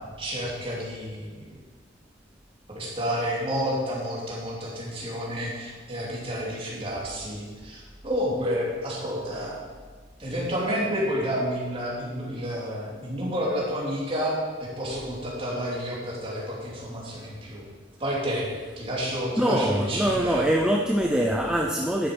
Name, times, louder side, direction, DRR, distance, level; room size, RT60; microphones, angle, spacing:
voice 1, 0.0-1.6 2.7-9.6 10.2-17.6 18.0-18.5 18.8-20.5, equal, 30° right, -5 dB, 3.0 m, -30 dB
voice 2, 19.4-22.1, right 1 dB, 5° right, 0 dB, 0.6 m, -23 dB
11.5 x 7.1 x 5.4 m, 1.4 s
head